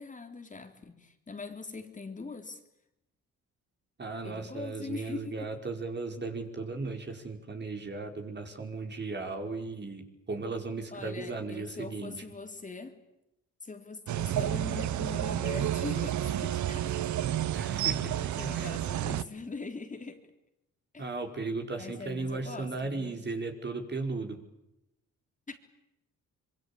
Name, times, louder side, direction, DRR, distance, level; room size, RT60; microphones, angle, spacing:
voice 1, 0.0-2.6 4.2-5.5 10.9-13.0 13.6-17.8 18.4-20.2 20.9-21.1 21.8-23.2 25.5-25.6, left 3 dB, 25° left, 5 dB, 3.8 m, -42 dB
voice 2, 4.0-12.2 17.5-18.7 21.0-24.4, right 3 dB, 35° right, 4 dB, 5.1 m, -36 dB
sound 1, 14.1-19.2, right 11 dB, 70° right, 1.2 m, -30 dB
26.0 x 23.5 x 8.8 m, 0.88 s
cardioid pair, 90°, 30 cm